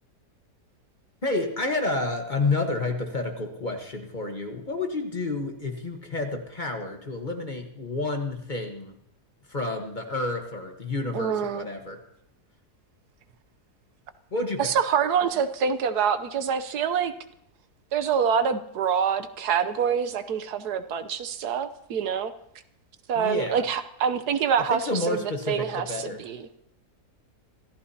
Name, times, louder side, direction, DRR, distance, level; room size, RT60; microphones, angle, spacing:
voice 1, 1.2-9.0 9.5-12.0 14.3-14.7 23.2-23.6 24.7-26.2, left 2 dB, 30° left, 3 dB, 1.3 m, -30 dB
voice 2, 11.1-11.7 14.6-17.1 17.9-22.3 23.1-26.6, right 7 dB, 75° right, 11 dB, 1.3 m, -26 dB
26.0 x 14.5 x 2.8 m, 0.72 s
omnidirectional pair, 1.7 m